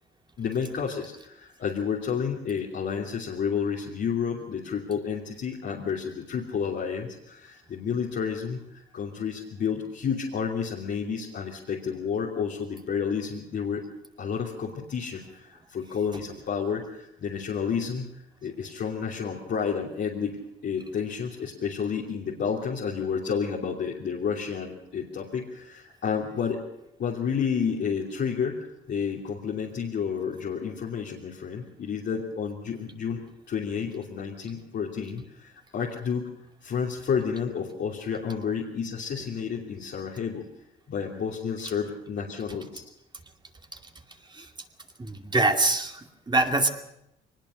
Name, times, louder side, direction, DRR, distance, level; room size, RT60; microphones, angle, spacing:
voice 1, 0.4-13.8 14.2-26.6 27.0-28.6 28.9-36.3 36.6-40.4 40.9-42.8, left 6 dB, 60° left, -3 dB, 3.1 m, -30 dB
voice 2, 45.0-46.7, right 2 dB, 20° right, 4 dB, 2.5 m, -25 dB
22.5 x 20.0 x 6.6 m, 0.83 s
cardioid pair, 90°, 20 cm